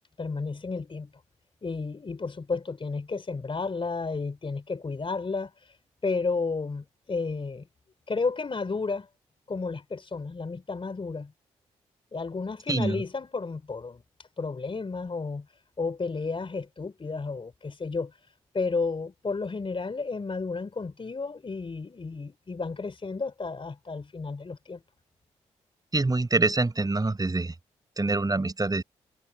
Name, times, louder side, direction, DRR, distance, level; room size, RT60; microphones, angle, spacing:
voice 1, 0.2-1.1 1.6-5.7 6.0-7.7 8.1-9.1 9.5-11.3 12.1-14.0 14.4-15.4 15.8-18.2 18.5-24.8, left 4 dB, 40° left, 3.5 m, -32 dB
voice 2, 12.7-13.0 25.9-27.5 28.0-28.8, right 3 dB, 25° right, 5.0 m, -25 dB
hypercardioid pair, 45°, 14 cm